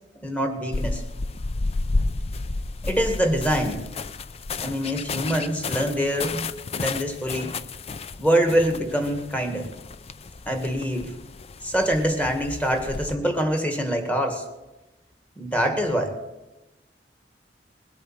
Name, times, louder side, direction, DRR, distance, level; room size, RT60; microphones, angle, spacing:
voice 1, 0.2-1.0 2.8-3.9 4.5-7.6 8.2-9.7 10.5-11.1 11.6-14.4 15.4-16.2, equal, 10° left, 5 dB, 1.8 m, -25 dB
sound 1, 0.7-13.1, left 3 dB, 35° left, 0.5 m, -32 dB
21.0 x 8.4 x 6.1 m, 1.0 s
head